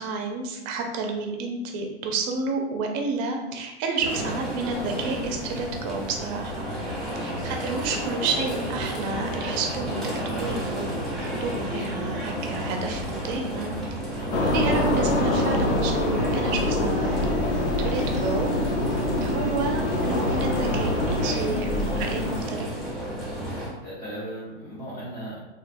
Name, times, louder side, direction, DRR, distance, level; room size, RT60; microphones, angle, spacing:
voice 1, 0.0-6.5 7.2-10.0 10.4-13.7 14.4-17.2 17.8-18.5 19.2-21.7 22.0-22.7, right 4 dB, 40° right, 3 dB, 0.6 m, -30 dB
sound 1, 4.0-23.7, equal, ahead, 1.1 m, -32 dB
sound 2, 14.3-22.4, left 1 dB, 75° left, 0.7 m, -25 dB
voice 2, 23.5-25.4, right 1 dB, 25° left, -8 dB, 0.9 m, -39 dB
3.2 x 2.5 x 2.5 m, 1.0 s
hypercardioid pair, 120°, 34 cm